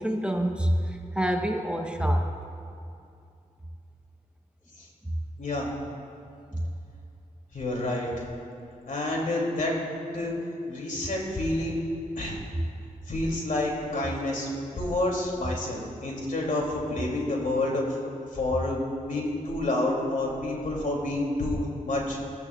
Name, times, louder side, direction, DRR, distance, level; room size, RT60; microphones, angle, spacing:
voice 1, 0.0-2.3 5.0-5.1 6.5-6.6, equal, 5° right, 2 dB, 1.1 m, -26 dB
voice 2, 5.4-5.7 7.5-8.3 8.9-9.8 10.1-10.3 10.7-11.8 12.2-12.4 13.1-14.5 14.7-22.2, left 2 dB, 65° left, -2 dB, 3.0 m, -29 dB
19.5 x 13.0 x 2.5 m, 2.6 s
cardioid pair, 55°, 15 cm